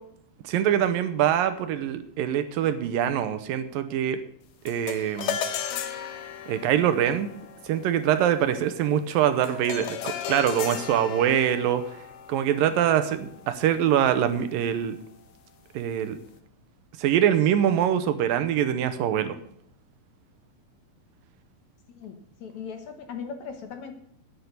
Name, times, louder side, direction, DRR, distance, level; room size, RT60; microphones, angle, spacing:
voice 1, 0.4-4.2 4.7-5.4 6.5-7.3 7.7-11.8 12.3-15.0 15.7-16.2 17.0-19.4, right 10 dB, 75° right, 11 dB, 2.5 m, -24 dB
sound 1, 4.7-14.2, left 8 dB, 85° left, 3.2 m, -36 dB
voice 2, 21.9-23.9, left 6 dB, 60° left, 6 dB, 2.3 m, -38 dB
10.5 x 9.8 x 6.7 m, 0.68 s
omnidirectional pair, 4.3 m